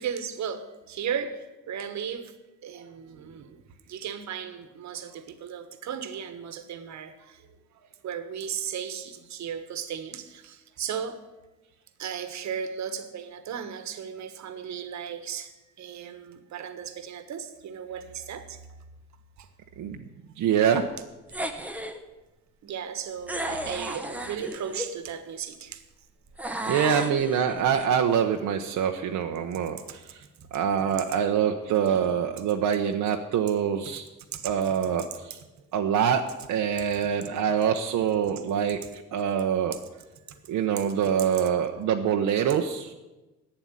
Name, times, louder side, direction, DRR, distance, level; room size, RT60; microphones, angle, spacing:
voice 1, 0.0-2.3 2.6-7.4 8.0-11.2 12.0-18.6 19.4-19.5 22.6-25.8 26.9-27.0 30.4-30.5 34.3-34.5 40.3-40.4 40.8-40.9, right 8 dB, 65° right, 10 dB, 1.4 m, -36 dB
voice 2, 20.4-20.8 26.7-30.2 30.5-34.0 34.4-35.4 35.7-36.2 36.5-39.7 40.5-42.9, right 8 dB, 85° right, 3 dB, 1.0 m, -25 dB
sound 1, 21.3-22.0 23.3-24.9 26.4-27.8, right 1 dB, 5° right, 1.0 m, -34 dB
11.5 x 8.9 x 9.7 m, 1.1 s
cardioid pair, 150°, 31 cm